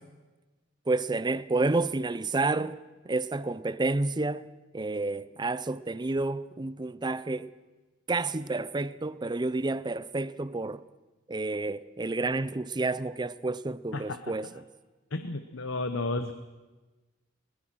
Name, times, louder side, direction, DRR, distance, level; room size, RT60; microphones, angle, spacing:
voice 1, 0.9-2.8 3.0-4.5 4.7-7.5 8.1-10.8 11.3-14.6, right 2 dB, 20° right, 0.6 m, -30 dB
voice 2, 15.1-16.3, left 2 dB, 80° left, 1.1 m, -32 dB
21.5 x 21.0 x 6.2 m
head